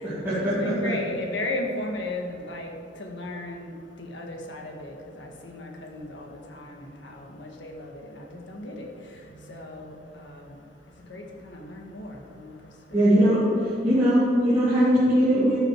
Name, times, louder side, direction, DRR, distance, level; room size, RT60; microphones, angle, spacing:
voice 1, 0.3-2.7 3.0-3.7 4.0-8.9 9.5-10.5 11.1-12.5 12.9-13.3, left 1 dB, 75° left, 2 dB, 1.7 m, -36 dB
voice 2, 12.9-15.6, equal, 15° right, -13 dB, 3.1 m, -20 dB
13.5 x 9.0 x 4.6 m, 2.6 s
head